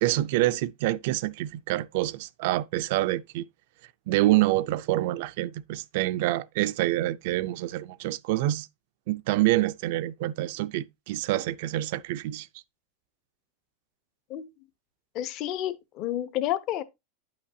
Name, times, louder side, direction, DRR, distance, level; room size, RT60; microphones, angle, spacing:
voice 1, 0.0-3.5 4.1-8.7 9.1-12.5, right 16 dB, 60° right, 0.4 m, -26 dB
voice 2, 15.1-16.8, left 12 dB, 40° left, 0.7 m, -30 dB
10.0 x 5.7 x 2.7 m
supercardioid pair, 155°, 0 cm